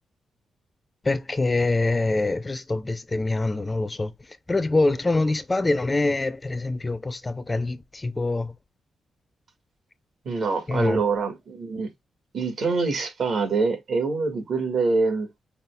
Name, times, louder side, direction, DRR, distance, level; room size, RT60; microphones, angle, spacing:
voice 1, 1.0-4.1 4.5-8.5 10.7-11.0, left 2 dB, 20° left, 0.4 m, -25 dB
voice 2, 10.3-11.9 12.3-15.3, right 4 dB, 65° right, 1.8 m, -25 dB
5.7 x 2.3 x 3.3 m
wide cardioid pair, 125°, 0 cm